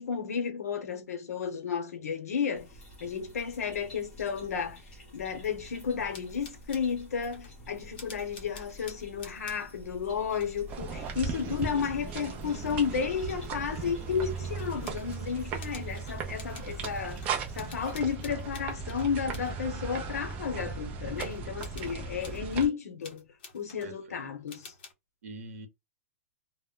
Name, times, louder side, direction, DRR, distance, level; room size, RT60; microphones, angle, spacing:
voice 1, 0.0-2.7 3.0-4.8 5.1-23.2 23.5-24.7, left 6 dB, 85° left, 0.8 m, -32 dB
sound 1, 2.5-18.0, left 1 dB, 15° left, 0.8 m, -49 dB
sound 2, 6.1-7.0 7.3-7.6 7.9-10.0 10.3-10.6 11.2-12.9 14.5-15.3 15.6-19.5 21.2-22.7 23.0-24.0 24.5-24.9, left 4 dB, 40° left, 0.7 m, -51 dB
sound 3, 10.7-22.7, right 5 dB, 15° right, 0.4 m, -37 dB
voice 2, 23.8-24.3 25.2-25.7, right 3 dB, 65° right, 0.9 m, -45 dB
2.1 x 2.1 x 3.5 m
hypercardioid pair, 170°, 8 cm